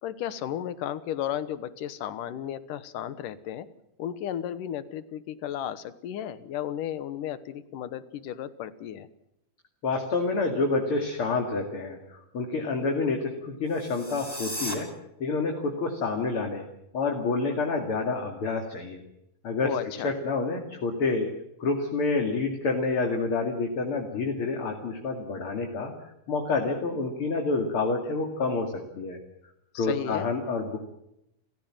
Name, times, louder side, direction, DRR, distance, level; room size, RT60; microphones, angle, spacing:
voice 1, 0.0-3.7 4.0-9.1 19.6-20.1 29.7-30.3, left 10 dB, 70° left, 14 dB, 2.5 m, -34 dB
voice 2, 9.8-14.9 15.2-16.6 16.9-19.0 19.4-19.7 20.0-21.3 21.6-25.9 26.3-29.2 29.7-30.8, left 3 dB, 40° left, 3 dB, 2.8 m, -28 dB
sound 1, 13.7-14.7, equal, 10° right, 4.4 m, -36 dB
29.5 x 15.5 x 7.5 m, 0.84 s
omnidirectional pair, 4.3 m